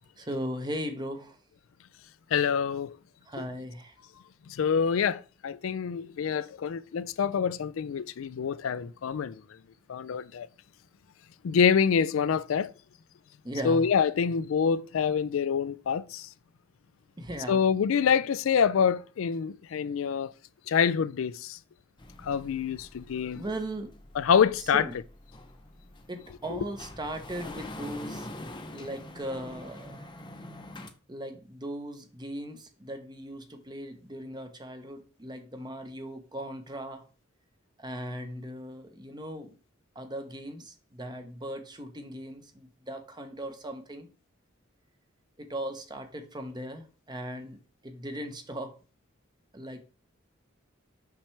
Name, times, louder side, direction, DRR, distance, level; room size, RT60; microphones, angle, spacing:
voice 1, 0.2-1.4 3.3-3.9 13.4-13.9 17.2-17.7 23.3-23.9 24.7-24.9 26.1-28.3 28.7-30.1 31.1-37.1 37.8-39.5 39.9-44.1 45.4-47.6 47.8-48.7 49.5-49.8, right 1 dB, 20° right, 0.9 m, -38 dB
voice 2, 2.3-3.0 4.5-9.4 9.9-10.5 11.4-12.7 13.6-16.3 17.5-20.3 20.7-21.6 22.2-23.4 24.2-24.8 26.5-26.6, left 7 dB, 80° left, 0.4 m, -26 dB
sound 1, 22.0-30.9, left 1 dB, 25° left, 0.7 m, -45 dB
5.8 x 5.7 x 3.3 m
head